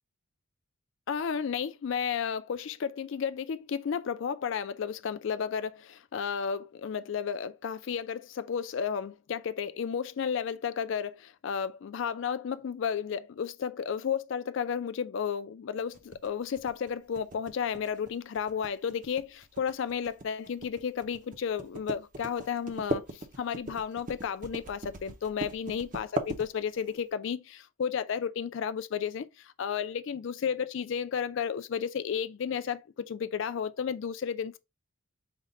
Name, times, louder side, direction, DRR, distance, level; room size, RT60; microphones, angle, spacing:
voice 1, 1.1-34.6, left 7 dB, 55° left, 0.3 m, -33 dB
sound 1, 15.9-27.0, right 2 dB, 35° right, 0.6 m, -38 dB
5.2 x 2.2 x 3.7 m
head